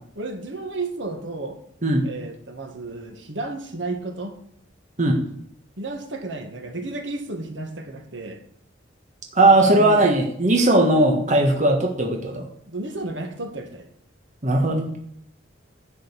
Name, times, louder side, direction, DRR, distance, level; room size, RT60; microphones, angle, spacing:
voice 1, 0.2-1.6 2.0-4.3 5.8-8.4 9.5-10.1 12.7-13.9, right 2 dB, 70° right, 5 dB, 1.8 m, -32 dB
voice 2, 9.3-12.5 14.4-14.9, right 2 dB, 40° right, 2 dB, 1.4 m, -18 dB
11.0 x 5.3 x 8.4 m, 0.67 s
head